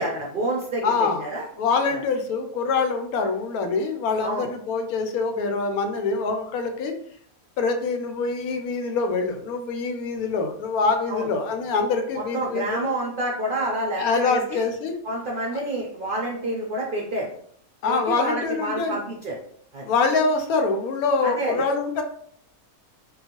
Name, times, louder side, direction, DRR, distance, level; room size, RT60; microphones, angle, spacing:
voice 1, 0.0-1.5 1.9-2.0 4.2-4.5 11.1-11.3 12.1-14.6 15.0-17.3 17.9-19.4 19.7-19.8 21.2-21.6, right 1 dB, 60° right, -2 dB, 0.5 m, -28 dB
voice 2, 0.8-1.3 1.6-6.9 7.6-12.9 13.9-15.0 15.5-15.6 17.8-19.0 19.8-22.0, left 4 dB, 85° left, 5 dB, 1.1 m, -25 dB
3.8 x 2.2 x 2.8 m, 0.64 s
omnidirectional pair, 1.5 m